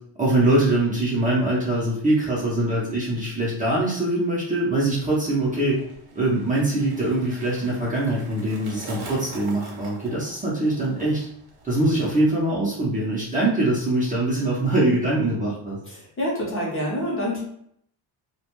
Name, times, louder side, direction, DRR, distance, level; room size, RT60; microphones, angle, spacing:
voice 1, 0.2-5.8 6.2-11.3 11.6-15.8, right 1 dB, 15° right, -7 dB, 0.6 m, -23 dB
Skateboard, 4.9-12.4 12.7-13.2, right 2 dB, 50° right, 0.7 m, -43 dB
voice 2, 15.9-17.4, equal, 25° left, -3 dB, 0.7 m, -27 dB
2.3 x 2.2 x 2.9 m, 0.67 s
cardioid pair, 145°, 49 cm